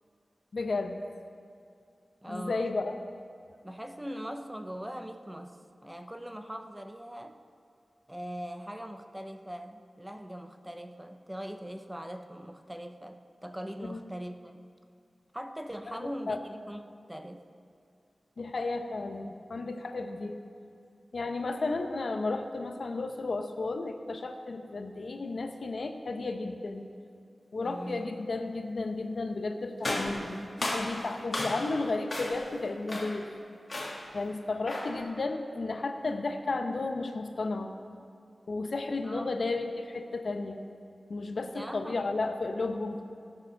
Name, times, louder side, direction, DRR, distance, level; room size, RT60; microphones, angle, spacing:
voice 1, 0.5-1.0 2.3-2.9 13.9-14.0 15.9-16.4 18.4-20.4 21.1-26.9 27.5-33.3 34.1-37.7 38.5-40.6 41.1-43.0, left 3 dB, 65° left, 6 dB, 0.8 m, -33 dB
voice 2, 2.2-2.8 3.6-7.4 8.1-14.5 15.3-16.8 17.1-17.4 27.6-28.1 39.0-39.5 41.3-42.1, equal, 10° right, 6 dB, 0.5 m, -41 dB
sound 1, 29.8-31.8 32.1-32.5 32.9-33.3 33.7-34.1 34.7-35.0, left 1 dB, 35° left, 1.7 m, -34 dB
16.5 x 6.8 x 5.8 m, 2.4 s
wide cardioid pair, 115°, 0 cm